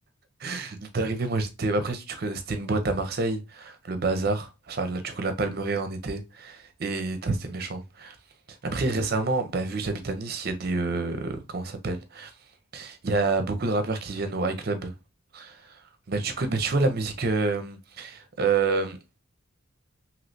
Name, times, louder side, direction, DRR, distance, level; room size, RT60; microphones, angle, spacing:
voice 1, 0.4-8.2 8.7-12.3 12.7-14.9 15.3-15.7 16.1-19.0, right 3 dB, 50° right, 0.6 m, -28 dB
3.2 x 2.8 x 2.6 m
head